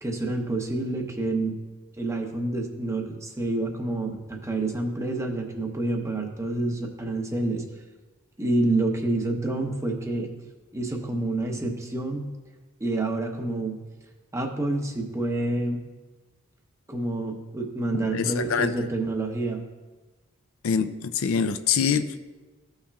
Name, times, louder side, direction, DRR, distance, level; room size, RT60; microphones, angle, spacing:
voice 1, 0.0-1.5 2.0-7.6 8.4-10.3 10.7-12.3 12.8-13.8 14.3-15.8 16.9-19.6, right 2 dB, 15° right, 2 dB, 0.8 m, -28 dB
voice 2, 17.9-18.7 20.6-22.3, left 6 dB, 65° left, 10 dB, 0.4 m, -25 dB
15.0 x 5.7 x 2.3 m, 1.2 s
head